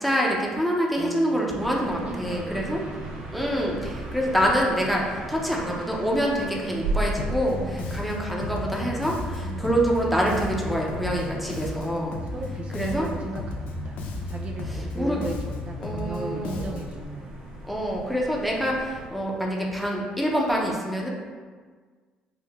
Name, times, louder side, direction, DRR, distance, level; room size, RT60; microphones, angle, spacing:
voice 1, 0.0-2.8 3.3-12.2 12.7-13.1 14.9-15.2 15.8-16.6 17.7-21.1, equal, ahead, -2 dB, 0.7 m, -26 dB
voice 2, 1.0-3.3 7.5-8.1 9.4-9.8 12.1-17.4, right 3 dB, 45° right, 1 dB, 0.3 m, -38 dB
sound 1, 1.6-19.1, right 2 dB, 60° right, 1.0 m, -38 dB
Bass guitar, 7.2-17.1, left 2 dB, 70° left, 0.4 m, -34 dB
3.6 x 2.1 x 3.5 m, 1.6 s
supercardioid pair, 65°, 3 cm